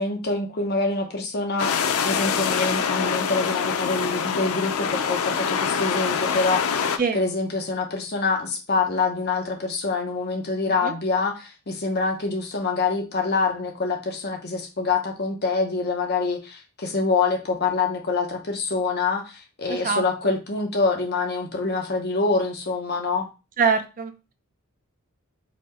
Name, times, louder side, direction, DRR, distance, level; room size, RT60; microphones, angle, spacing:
voice 1, 0.0-1.8 2.0-23.3, left 4 dB, 50° left, 2 dB, 0.9 m, -25 dB
sound 1, 1.6-7.0, left 6 dB, 80° left, 0.5 m, -25 dB
voice 2, 19.7-20.3 23.6-24.3, right 5 dB, 40° right, 7 dB, 0.6 m, -25 dB
4.3 x 2.8 x 4.2 m, 0.30 s
head